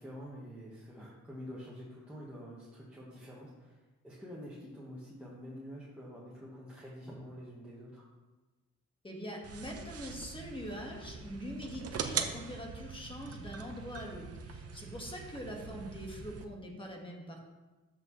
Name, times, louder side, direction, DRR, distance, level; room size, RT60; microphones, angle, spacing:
voice 1, 0.0-8.0, equal, 5° right, -6 dB, 1.4 m, -47 dB
voice 2, 9.0-17.4, equal, 15° left, 0 dB, 1.6 m, -43 dB
sound 1, 9.4-16.4, right 6 dB, 50° right, 0.8 m, -42 dB
13.0 x 6.0 x 3.1 m, 1.2 s
wide cardioid pair, 135°, 31 cm